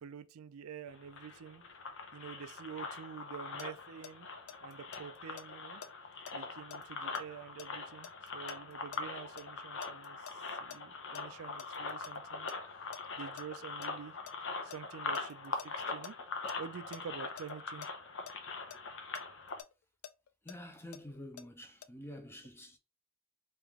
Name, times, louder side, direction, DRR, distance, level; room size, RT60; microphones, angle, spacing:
voice 1, 0.0-1.6 2.1-4.3 4.6-5.8 6.3-12.5 13.1-14.2 14.6-16.2 16.6-17.9, right 7 dB, 75° right, 0.4 m, -48 dB
sound 1, 0.9-19.6, left 4 dB, 60° left, 0.8 m, -42 dB
sound 2, 3.6-9.4 9.8-12.2 12.5-12.6 12.9-13.4 13.8-17.0 17.4-17.5 17.8-17.9 18.3-18.4 18.7-21.4 21.8-21.9, left 9 dB, 80° left, 0.4 m, -50 dB
voice 2, 20.4-22.8, left 1 dB, 10° left, 0.6 m, -48 dB
3.4 x 3.0 x 3.5 m
head